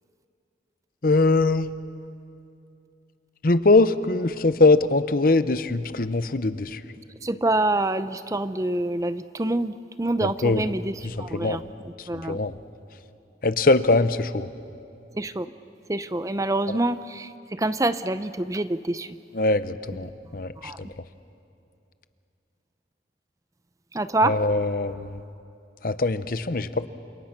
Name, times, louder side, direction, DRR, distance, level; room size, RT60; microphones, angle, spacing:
voice 1, 1.0-1.7 3.4-6.8 10.2-10.6 11.0-11.6 12.3-12.5 13.4-14.5 19.3-20.5 24.2-25.2 25.8-26.9, left 3 dB, 50° left, 13 dB, 0.8 m, -22 dB
voice 2, 7.2-12.4 15.1-15.5 15.9-19.1 20.6-20.8 23.9-24.4, right 2 dB, 20° right, 12 dB, 0.5 m, -26 dB
29.5 x 27.5 x 6.0 m, 2.6 s
head